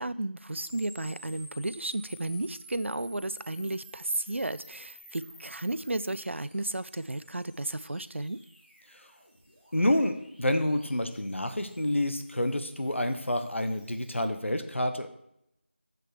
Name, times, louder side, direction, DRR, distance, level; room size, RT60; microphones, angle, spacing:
voice 1, 0.0-8.4, right 2 dB, 80° right, 16 dB, 0.5 m, -33 dB
sound 1, 0.5-14.2, equal, 5° right, 1.2 m, -53 dB
voice 2, 9.7-15.1, left 1 dB, 80° left, 7 dB, 1.1 m, -28 dB
7.6 x 6.6 x 4.8 m, 0.77 s
figure-of-eight pair, 175°, 7 cm